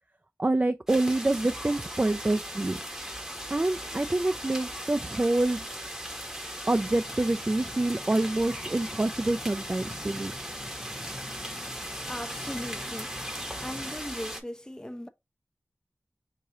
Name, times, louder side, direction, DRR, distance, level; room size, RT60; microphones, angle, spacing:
voice 1, 0.4-2.8 3.5-5.6 6.7-10.3, right 2 dB, 30° right, 0.3 m, -26 dB
sound 1, 0.9-14.4, equal, 10° right, 0.9 m, -38 dB
sound 2, 6.7-14.0, left 2 dB, 50° left, 0.8 m, -47 dB
voice 2, 12.1-13.2 13.6-15.1, equal, 15° left, 0.6 m, -38 dB
4.8 x 2.8 x 2.7 m
wide cardioid pair, 45°, 5 cm